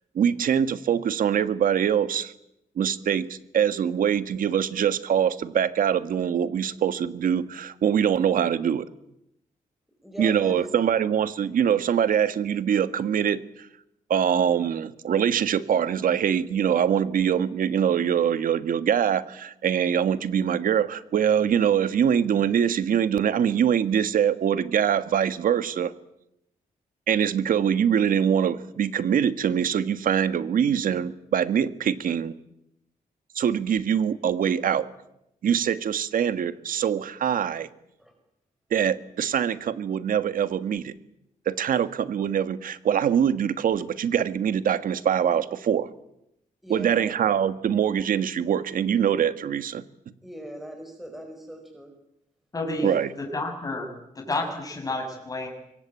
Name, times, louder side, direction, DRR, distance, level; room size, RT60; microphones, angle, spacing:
voice 1, 0.1-2.3 2.8-8.8 10.2-13.4 14.1-25.9 27.1-32.3 33.3-34.9 35.4-37.7 38.7-40.9 41.4-45.9 46.7-49.8 52.8-53.1, right 8 dB, 70° right, 12 dB, 1.5 m, -23 dB
voice 2, 10.0-10.7 38.0-38.1 46.6-47.1 50.2-51.9 52.8-53.0, equal, ahead, 3 dB, 5.1 m, -39 dB
voice 3, 52.5-52.9 53.2-55.5, left 2 dB, 25° left, 1 dB, 6.5 m, -30 dB
25.5 x 22.5 x 9.0 m, 0.83 s
wide cardioid pair, 150°, 15 cm